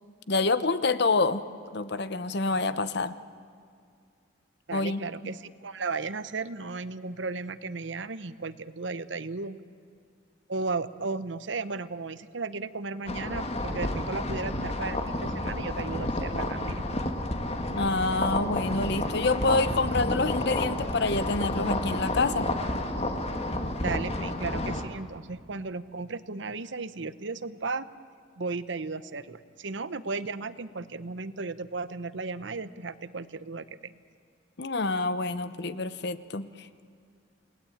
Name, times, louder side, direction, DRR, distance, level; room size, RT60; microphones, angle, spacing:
voice 1, 0.3-1.4 1.7-3.1 4.7-5.3 17.7-22.5 34.6-36.8, left 3 dB, 60° left, 13 dB, 0.9 m, -27 dB
voice 2, 4.7-9.6 10.5-16.9 23.8-27.9 28.4-34.0, right 3 dB, 65° right, 14 dB, 0.9 m, -35 dB
sound 1, 13.1-24.8, left 1 dB, 30° left, 1.8 m, -30 dB
28.5 x 19.0 x 8.8 m, 2.3 s
head